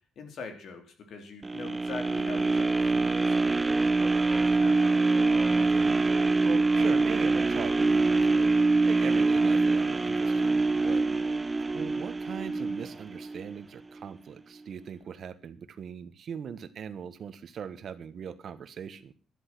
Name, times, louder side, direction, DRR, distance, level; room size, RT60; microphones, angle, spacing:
voice 1, 0.2-3.6 4.0-5.0 10.8-11.2, left 4 dB, 65° left, 6 dB, 3.8 m, -43 dB
sound 1, 1.4-13.5 14.0-14.1, right 3 dB, 20° right, 0.6 m, -25 dB
voice 2, 5.6-6.0 6.4-8.5 8.8-11.0 11.6-19.1, right 7 dB, 60° right, 13 dB, 1.3 m, -40 dB
12.5 x 11.5 x 6.1 m, 0.37 s
cardioid pair, 90°, 0 cm